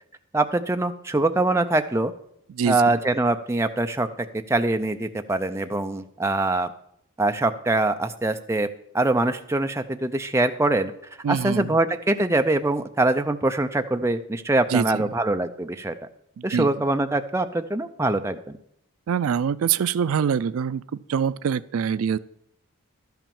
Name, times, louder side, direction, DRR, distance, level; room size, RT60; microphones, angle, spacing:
voice 1, 0.3-2.1 2.7-6.7 7.2-8.7 8.9-10.9 11.3-15.9 16.4-18.6, right 2 dB, 10° right, 7 dB, 0.4 m, -23 dB
voice 2, 2.5-2.8 11.2-11.8 14.7-15.1 16.4-16.7 19.1-20.8 21.1-22.2, right 7 dB, 70° right, 17 dB, 0.3 m, -24 dB
12.0 x 5.9 x 6.9 m, 0.74 s
head